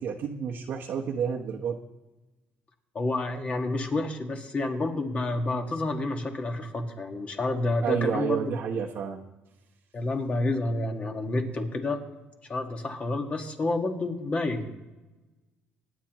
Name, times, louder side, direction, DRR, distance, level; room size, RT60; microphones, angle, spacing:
voice 1, 0.0-1.8 7.8-9.2, right 7 dB, 60° right, -3 dB, 1.1 m, -30 dB
voice 2, 2.9-8.4 9.9-12.0 12.5-14.7, left 2 dB, 30° left, 3 dB, 1.8 m, -29 dB
25.5 x 10.0 x 3.1 m, 1.1 s
cardioid pair, 115°, 4 cm